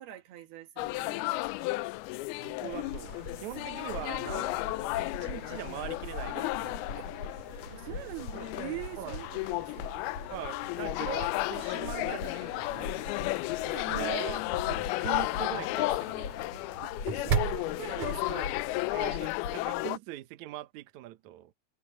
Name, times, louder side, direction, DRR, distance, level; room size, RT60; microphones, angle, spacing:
voice 1, 0.0-1.8 7.0-7.1 7.7-9.9 13.7-13.9 16.8-16.9 17.2-18.6, right 15 dB, 65° right, 3.5 m, -43 dB
sound 1, 0.8-20.0, left 20 dB, 85° left, 2.2 m, -33 dB
voice 2, 2.4-4.5 5.0-7.1 9.0-9.2 10.3-13.2 13.6-16.3 18.9-21.5, right 14 dB, 90° right, 1.6 m, -42 dB
sound 2, 2.7-19.8, left 4 dB, 40° left, 5.0 m, -43 dB
sound 3, 2.8-19.1, right 5 dB, 45° right, 3.4 m, -42 dB
omnidirectional pair, 5.0 m